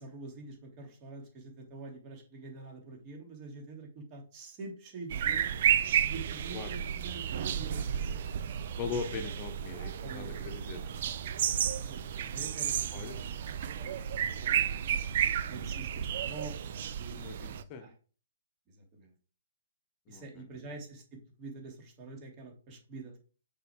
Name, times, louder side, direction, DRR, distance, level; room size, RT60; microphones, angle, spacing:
voice 1, 0.0-5.6 6.0-7.9 10.0-10.6 10.9-14.8 15.5-17.9 18.9-19.1 20.1-23.2, right 3 dB, 30° right, 1 dB, 3.1 m, -46 dB
sound 1, 5.1-17.6, right 9 dB, 50° right, 0.6 m, -32 dB
voice 2, 8.7-11.0 12.9-13.2 17.1-17.9 20.1-20.4, left 5 dB, 30° left, 6 dB, 1.1 m, -40 dB
6.7 x 5.5 x 4.7 m, 0.40 s
figure-of-eight pair, 130°, 0 cm